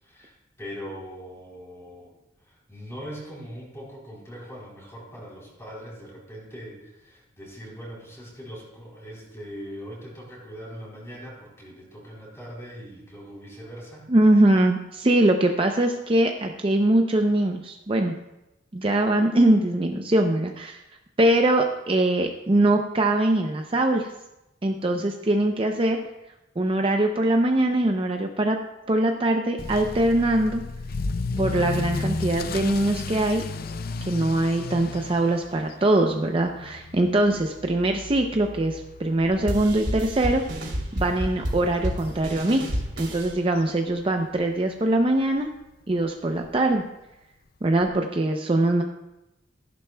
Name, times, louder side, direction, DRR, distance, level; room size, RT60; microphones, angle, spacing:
voice 1, 0.0-2.1 2.4-14.0, equal, 15° left, -4 dB, 3.6 m, -41 dB
voice 2, 14.1-18.1 18.7-20.8 21.2-24.1 24.6-26.0 26.6-28.6 28.9-30.6 31.4-33.4 34.1-40.4 40.9-42.6 43.0-45.5 45.9-46.8 47.6-48.8, right 1 dB, 30° right, 3 dB, 0.5 m, -22 dB
Motor vehicle (road) / Accelerating revving vroom, 29.6-44.4 44.7-45.1 45.6-45.7 46.0-46.1 46.4-46.5 47.8-47.9, left 3 dB, 50° left, 0.5 m, -35 dB
sound 1, 39.5-43.3, equal, 75° right, 3.0 m, -30 dB
15.0 x 11.0 x 2.2 m, 0.94 s
head